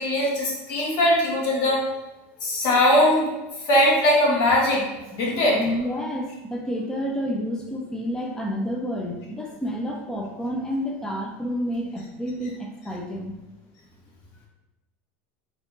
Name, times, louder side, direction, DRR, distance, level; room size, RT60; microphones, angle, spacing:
voice 1, 0.0-1.8 2.4-3.3 3.6-5.6, left 1 dB, 60° left, -3 dB, 1.3 m, -20 dB
voice 2, 5.6-13.4, equal, 10° left, -1 dB, 0.4 m, -29 dB
4.3 x 2.8 x 2.6 m, 1.0 s
supercardioid pair, 125°, 7 cm